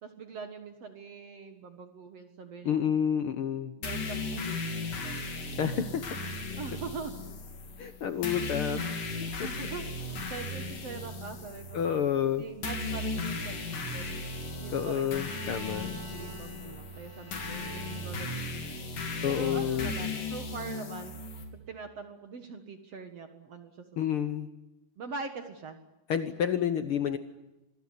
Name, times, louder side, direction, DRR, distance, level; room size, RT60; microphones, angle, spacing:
voice 1, 0.0-2.8 3.8-5.2 6.6-7.1 9.4-11.8 12.2-14.3 14.6-18.9 19.3-21.1 21.5-23.9 24.2-24.4 25.0-25.8, right 5 dB, 55° right, 7 dB, 2.3 m, -43 dB
voice 2, 2.6-3.7 5.5-6.2 7.8-8.8 9.2-9.5 11.7-12.4 14.7-16.0 19.2-19.9 24.0-24.5 26.1-27.2, left 9 dB, 90° left, 10 dB, 1.2 m, -29 dB
sound 1, 3.8-21.4, left 2 dB, 65° left, 4.8 m, -36 dB
Bowed string instrument, 13.4-18.6, right 1 dB, 20° right, 5.6 m, -49 dB
26.0 x 21.0 x 9.7 m, 0.98 s
omnidirectional pair, 4.1 m